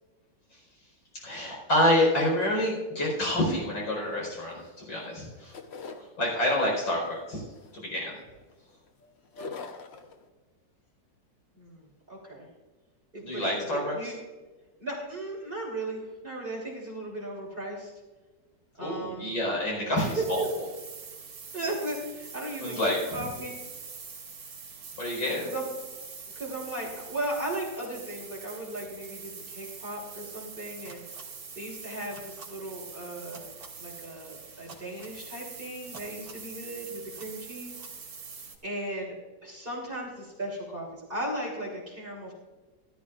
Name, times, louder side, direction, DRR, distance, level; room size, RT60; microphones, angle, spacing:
voice 1, 1.2-5.5 6.2-7.4 7.7-8.2 9.4-9.6 13.2-14.1 18.8-20.4 22.6-23.2 25.0-25.5, left 1 dB, 75° left, -2 dB, 5.3 m, -28 dB
sound 1, 3.5-4.7 5.0-6.1 6.6-7.0 7.5-8.9 9.2-10.2, left 4 dB, 50° left, 0.8 m, -43 dB
voice 2, 11.6-12.5 13.1-14.1 14.8-17.9 18.8-19.4 19.9-20.6 21.5-23.5 25.4-25.6 26.3-31.0 31.5-33.5 33.8-37.8 38.6-39.1 39.4-42.3, right 1 dB, 25° right, -5 dB, 3.4 m, -36 dB
sound 2, 20.0-38.6, right 5 dB, 75° right, 2.7 m, -44 dB
sound 3, 30.8-31.2 32.1-32.4 33.3-33.7 34.7-35.1 35.9-36.4 37.2-37.3 37.7-37.9, right 4 dB, 50° right, 2.3 m, -47 dB
17.5 x 12.5 x 2.5 m, 1.3 s
omnidirectional pair, 2.2 m